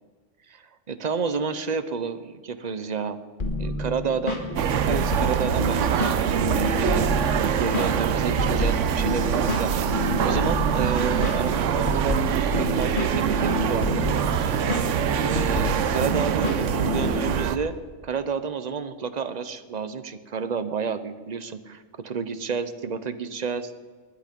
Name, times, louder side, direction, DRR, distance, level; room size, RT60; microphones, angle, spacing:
voice 1, 0.5-3.2 3.5-4.4 4.7-7.1 7.6-14.2 15.2-17.8 18.0-23.8, right 6 dB, 40° right, 11 dB, 0.7 m, -30 dB
sound 1, 3.4-17.3, left 2 dB, 40° left, 1.8 m, -30 dB
sound 2, 4.6-17.6, right 8 dB, 70° right, 1.0 m, -24 dB
19.5 x 10.5 x 5.3 m, 1.5 s
omnidirectional pair, 1.4 m